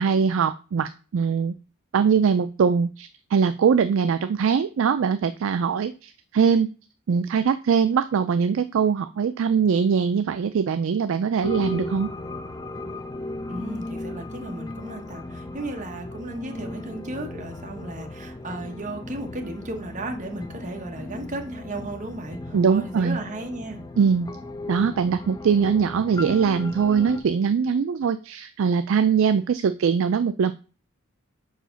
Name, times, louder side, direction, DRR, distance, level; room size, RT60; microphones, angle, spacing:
voice 1, 0.0-1.5 1.9-6.7 7.1-12.1 22.5-23.2 24.0-24.3 24.7-30.5, right 6 dB, 65° right, 11 dB, 0.4 m, -22 dB
sound 1, 11.4-27.2, left 2 dB, 20° left, 0.5 m, -36 dB
voice 2, 13.5-23.8, right 2 dB, 35° right, 3 dB, 1.1 m, -35 dB
4.9 x 4.8 x 5.6 m, 0.35 s
head